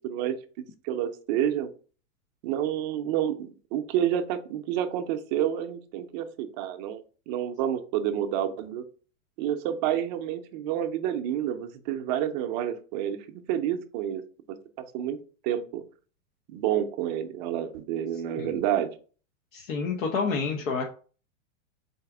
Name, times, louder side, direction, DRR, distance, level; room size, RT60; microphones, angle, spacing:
voice 1, 0.0-1.7 2.4-8.8 9.4-14.2 14.9-15.2 15.4-15.8 16.5-18.9, right 10 dB, 35° right, 7 dB, 0.5 m, -29 dB
voice 2, 19.5-20.8, left 4 dB, 85° left, 0 dB, 1.0 m, -29 dB
4.1 x 2.5 x 4.7 m, 0.39 s
supercardioid pair, 145°, 39 cm